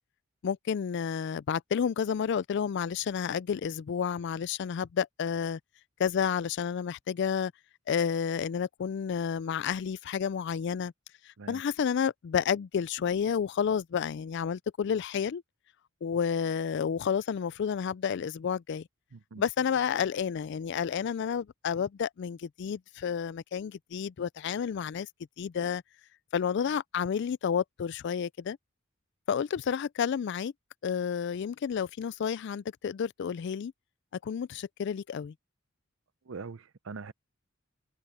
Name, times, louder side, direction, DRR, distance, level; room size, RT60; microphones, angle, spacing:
voice 1, 0.4-5.6 6.0-7.5 7.9-10.9 11.5-15.4 16.0-18.9 19.4-25.1 25.4-25.8 26.3-28.6 29.3-30.5 30.8-33.7 34.2-35.3, left 7 dB, 55° left, 0.3 m, -30 dB
voice 2, 19.1-19.4 36.3-37.1, right 4 dB, 65° right, 0.6 m, -42 dB
head